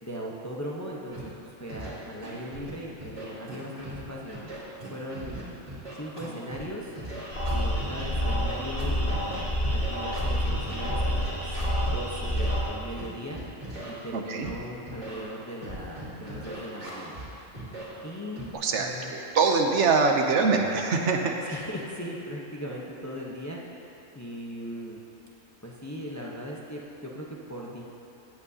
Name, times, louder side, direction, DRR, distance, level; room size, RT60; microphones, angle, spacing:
voice 1, 0.0-4.6 4.9-5.4 5.9-6.9 7.5-13.4 13.8-17.2 18.0-18.5 18.8-19.2 21.5-23.6 24.1-25.0 25.6-27.8, equal, 15° left, -4 dB, 0.8 m, -38 dB
Scratching (performance technique), 1.1-1.2 1.7-1.9 2.2-2.7 3.0-4.0 4.3-6.6 6.9-12.0 12.3-12.5 13.0-13.9 14.4-14.5 14.9-15.2 15.6-17.3 17.5-17.8 18.4-18.5, right 1 dB, 45° right, 2.5 m, -39 dB
sound 1, 7.3-12.6, equal, 65° left, 2.4 m, -28 dB
voice 2, 14.1-14.5 18.5-21.4, right 4 dB, 70° right, 2 dB, 1.0 m, -24 dB
16.5 x 8.1 x 2.8 m, 2.9 s
omnidirectional pair, 1.3 m